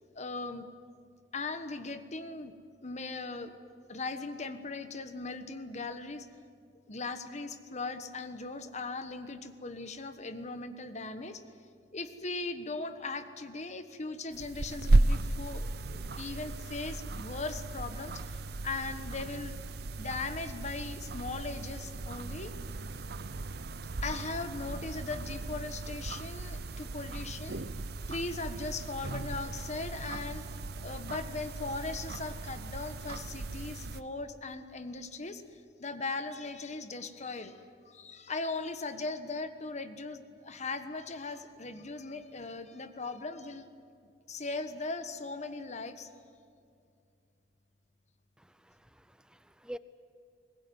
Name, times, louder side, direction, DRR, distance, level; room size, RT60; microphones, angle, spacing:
voice 1, 0.1-0.7 1.3-2.5 2.8-3.5 3.9-6.3 6.9-11.4 11.9-19.6 20.0-22.5 24.0-27.6 28.1-30.5 30.8-37.6 37.9-43.7 44.3-46.1, left 3 dB, 40° left, 10 dB, 1.3 m, -39 dB
sound 1, 14.3-34.0, right 2 dB, 65° right, 0.8 m, -35 dB
voice 2, 48.4-49.8, equal, 5° right, 13 dB, 0.7 m, -47 dB
22.0 x 20.5 x 9.4 m, 2.3 s
head